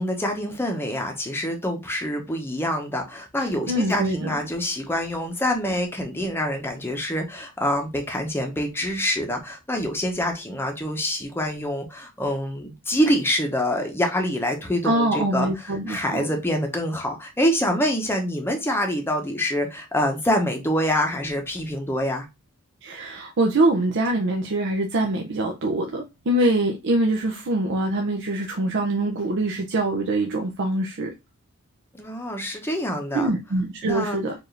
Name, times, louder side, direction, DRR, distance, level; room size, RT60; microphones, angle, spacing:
voice 1, 0.0-22.3 32.0-33.3 33.8-34.2, equal, 10° left, 0.8 m, -26 dB
voice 2, 3.7-4.3 14.8-16.3 22.8-31.1 33.1-34.3, right 1 dB, 55° right, 0.6 m, -24 dB
4.6 x 2.6 x 3.2 m
head